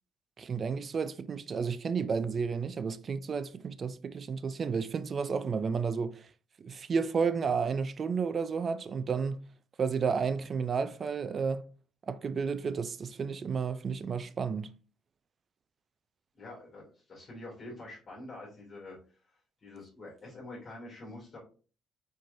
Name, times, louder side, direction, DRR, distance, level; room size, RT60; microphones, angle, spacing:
voice 1, 0.4-6.3 6.6-9.4 9.8-11.7 12.1-14.7, right 5 dB, 40° right, 0.4 m, -32 dB
voice 2, 16.3-19.0 19.6-21.4, left 2 dB, 35° left, 2.3 m, -46 dB
4.6 x 4.5 x 2.6 m
cardioid pair, 115°, 0 cm